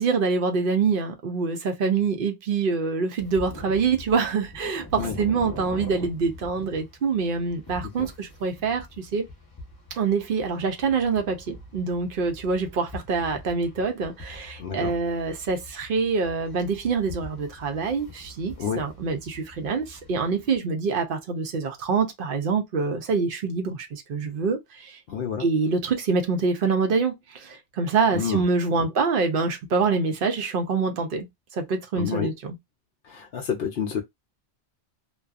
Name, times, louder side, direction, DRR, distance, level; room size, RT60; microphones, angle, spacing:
voice 1, 0.0-9.3 9.9-25.0 25.4-31.3 31.5-32.6, right 4 dB, 60° right, 0.7 m, -25 dB
sound 1, 3.2-20.6, left 1 dB, 20° left, 0.8 m, -43 dB
voice 2, 14.6-14.9 18.6-18.9 25.1-25.4 28.1-28.4 32.0-32.3 33.0-34.0, left 7 dB, 65° left, 0.7 m, -29 dB
2.6 x 2.3 x 2.3 m
omnidirectional pair, 1.2 m